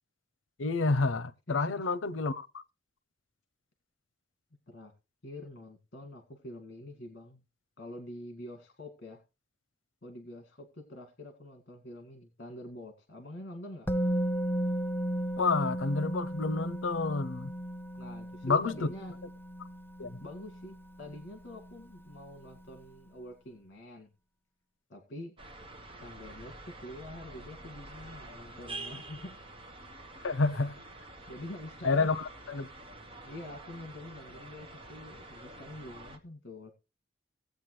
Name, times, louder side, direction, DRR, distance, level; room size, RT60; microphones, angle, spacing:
voice 1, 0.6-2.6 15.4-17.5 18.4-18.9 20.0-20.2 30.2-30.7 31.8-32.7, left 3 dB, 85° left, 0.7 m, -29 dB
voice 2, 1.5-1.9 4.7-4.9 5.2-7.4 7.8-9.2 10.0-13.9 18.0-19.2 20.2-24.1 24.9-25.3 26.0-29.4 31.3-32.1 33.2-36.7, left 1 dB, 55° left, 1.9 m, -46 dB
Musical instrument, 13.9-21.8 22.0-22.2, equal, 10° left, 0.5 m, -35 dB
sound 1, 25.4-36.2, right 2 dB, 30° right, 1.4 m, -47 dB
17.5 x 8.2 x 3.2 m
head